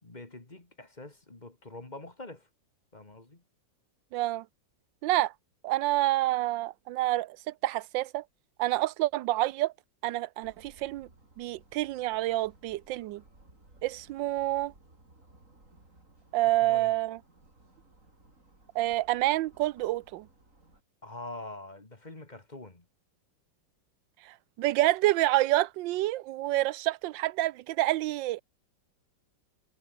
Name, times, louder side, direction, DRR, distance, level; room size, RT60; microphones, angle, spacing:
voice 1, 0.0-2.5 2.9-3.4 16.6-16.9 21.0-22.9, left 2 dB, 25° left, 2.4 m, -45 dB
voice 2, 4.1-4.4 5.0-5.3 5.6-8.2 8.6-9.7 10.0-11.1 11.4-13.2 13.8-14.7 16.3-17.2 18.7-20.3 24.2-28.4, right 16 dB, 85° right, 1.3 m, -28 dB
sound 1, 10.4-20.8, right 2 dB, 45° right, 6.1 m, -59 dB
omnidirectional pair, 2.0 m